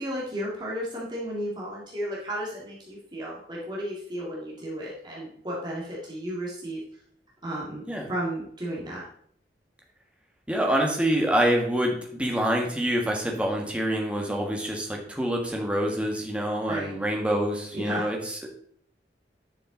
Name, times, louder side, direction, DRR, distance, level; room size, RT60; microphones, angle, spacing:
voice 1, 0.0-6.8 7.4-9.0 16.7-16.9 17.7-18.1, equal, 25° right, -5 dB, 2.0 m, -33 dB
voice 2, 10.5-18.5, equal, 5° right, 0 dB, 1.5 m, -26 dB
10.5 x 5.7 x 3.9 m, 0.63 s
head